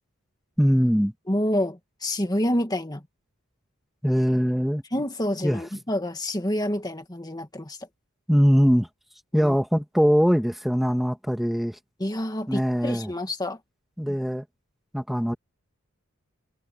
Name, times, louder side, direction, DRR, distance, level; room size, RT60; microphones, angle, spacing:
voice 1, 0.6-1.1 4.0-4.8 5.4-5.6 8.3-8.9 9.3-11.8 12.5-13.1 14.0-14.4 14.9-15.3, equal, ahead, 1.9 m, -22 dB
voice 2, 1.3-3.0 4.9-7.8 9.3-9.6 12.0-13.6 14.1-14.2, left 1 dB, 20° left, 2.1 m, -28 dB
head